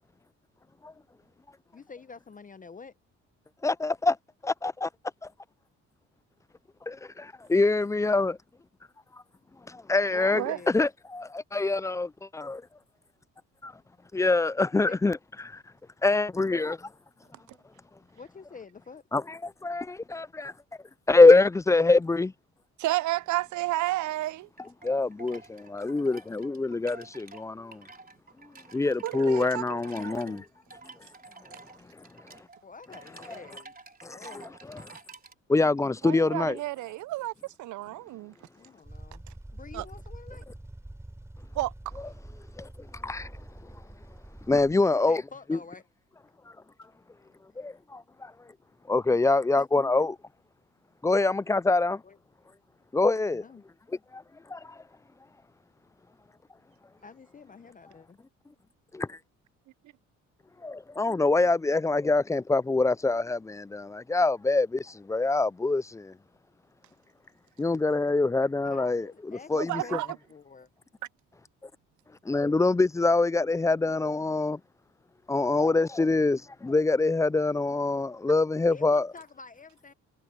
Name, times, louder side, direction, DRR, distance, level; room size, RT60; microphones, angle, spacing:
voice 1, 1.7-2.9 10.1-10.7 14.9-15.0 18.1-19.0 32.6-33.8 34.0-34.6 38.5-39.2 39.5-40.5 44.9-45.8 49.6-49.7 52.0-52.2 53.3-53.6 57.0-58.2 68.6-70.0 70.3-70.7 78.7-79.9, left 5 dB, 25° left, 0.7 m, -47 dB
voice 2, 3.6-4.1 4.6-4.9 6.9-8.4 9.7-12.6 13.6-13.7 14.1-15.6 16.0-16.9 19.1-20.5 21.1-22.3 24.8-27.9 28.7-30.5 31.9-32.4 34.0-35.0 35.5-36.6 42.6-43.3 44.5-45.2 45.5-45.6 47.6-48.3 48.9-50.1 51.0-52.0 52.9-53.4 54.1-54.2 54.5-54.8 58.9-59.2 60.6-66.2 67.6-69.1 69.5-70.0 72.2-74.6 75.3-79.1, left 3 dB, 10° left, 0.3 m, -25 dB
voice 3, 22.8-24.5 29.0-30.4 36.0-37.3 37.6-38.3 39.7-39.9 41.5-41.7 69.5-70.1, right 16 dB, 75° right, 0.6 m, -31 dB
sound 1, 24.0-35.3, right 4 dB, 30° right, 4.1 m, -50 dB
sound 2, 38.8-44.7, right 1 dB, 10° right, 4.9 m, -45 dB
cardioid pair, 90°, 30 cm